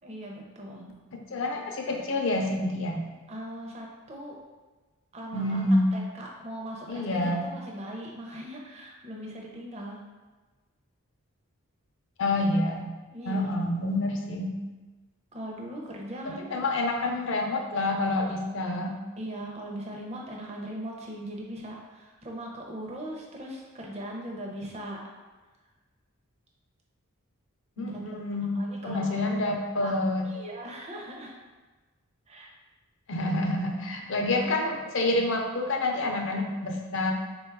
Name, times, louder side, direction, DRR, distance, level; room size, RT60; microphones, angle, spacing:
voice 1, 0.0-0.9 3.3-4.4 5.1-10.0 13.1-13.5 15.3-16.6 19.2-25.0 27.8-28.2 28.5-29.3 29.8-29.9 30.2-31.3 32.3-32.5, right 1 dB, 30° right, -1 dB, 0.5 m, -39 dB
voice 2, 1.1-3.0 5.3-5.9 6.9-7.4 12.2-12.9 13.2-14.5 16.2-18.9 27.8-30.2 33.1-37.1, left 2 dB, 55° left, 2 dB, 0.5 m, -28 dB
3.7 x 2.3 x 4.5 m, 1.3 s
head